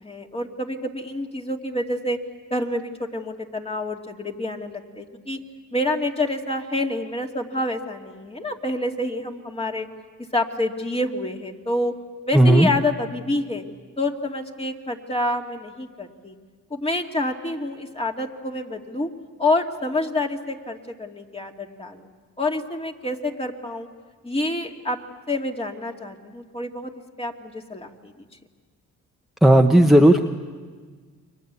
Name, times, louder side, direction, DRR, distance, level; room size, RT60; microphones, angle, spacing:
voice 1, 0.0-2.2 2.5-5.4 5.7-9.9 10.3-11.9 12.3-13.6 14.0-16.3 16.7-19.1 19.4-22.1 22.4-23.9 24.2-25.0 25.3-26.9 27.2-28.1, left 1 dB, 20° left, 2 dB, 2.5 m, -27 dB
voice 2, 12.3-12.7 29.4-30.2, right 1 dB, ahead, 2 dB, 1.3 m, -13 dB
29.5 x 23.5 x 8.3 m, 1.5 s
cardioid pair, 90°, 30 cm